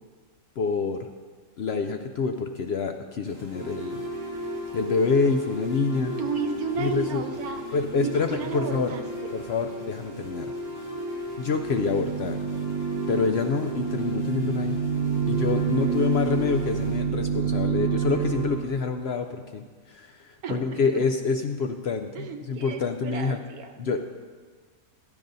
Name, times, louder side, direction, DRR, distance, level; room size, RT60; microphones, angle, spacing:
voice 1, 0.6-1.1 1.6-4.0 4.7-6.1 6.8-7.2 7.7-8.9 9.3-10.5 11.4-12.4 13.1-14.8 15.3-23.4 23.8-24.0, left 4 dB, 65° left, 6 dB, 0.6 m, -27 dB
sound 1, 3.3-17.0, equal, 20° left, 3.9 m, -50 dB
sound 2, 3.5-18.6, right 5 dB, 20° right, 2.1 m, -30 dB
voice 2, 6.2-7.6 8.0-9.3 20.4-21.1 22.1-23.7, right 5 dB, 85° right, 6 dB, 1.4 m, -33 dB
15.5 x 12.5 x 2.6 m, 1.5 s
omnidirectional pair, 1.5 m